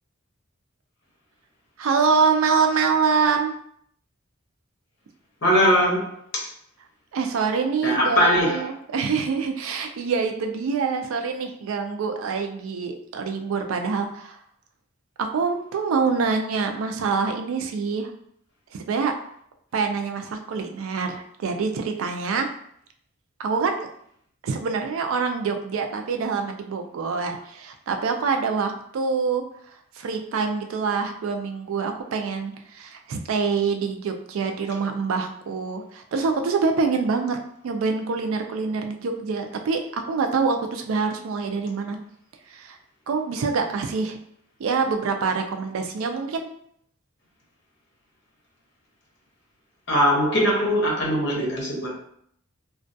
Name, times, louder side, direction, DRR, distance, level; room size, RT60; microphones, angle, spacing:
voice 1, 1.8-3.5 7.1-8.7 8.9-14.4 15.2-18.1 18.7-19.1 19.7-22.5 23.4-23.9 24.4-29.4 30.0-37.4 37.6-42.0 42.5-42.8 43.1-44.2 44.6-46.5, right 5 dB, 85° right, 5 dB, 0.4 m, -25 dB
voice 2, 5.4-6.5 7.8-8.6 49.9-52.0, equal, 60° left, -3 dB, 0.8 m, -21 dB
2.3 x 2.2 x 2.6 m, 0.67 s
head